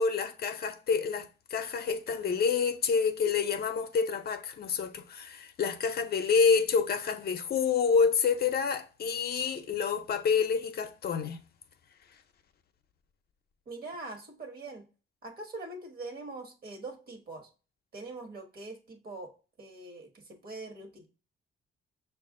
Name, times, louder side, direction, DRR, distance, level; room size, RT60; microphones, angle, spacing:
voice 1, 0.0-11.4, left 5 dB, 55° left, 0.5 m, -28 dB
voice 2, 13.7-14.9 15.2-17.5 17.9-19.3 19.6-21.1, right 2 dB, 50° right, 1.1 m, -43 dB
5.7 x 2.4 x 3.6 m
cardioid pair, 90°, 20 cm